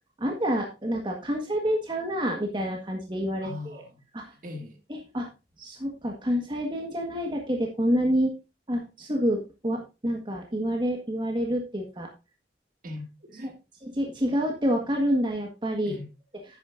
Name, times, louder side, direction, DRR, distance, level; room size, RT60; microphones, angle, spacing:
voice 1, 0.2-3.5 4.1-4.2 4.9-5.3 5.6-8.3 8.7-12.1 13.8-15.9, equal, 25° right, 1.6 m, -28 dB
voice 2, 3.4-4.0 4.3-4.8 12.8-13.6 15.8-16.1, left 2 dB, 50° right, 2.1 m, -40 dB
10.5 x 9.4 x 2.6 m
head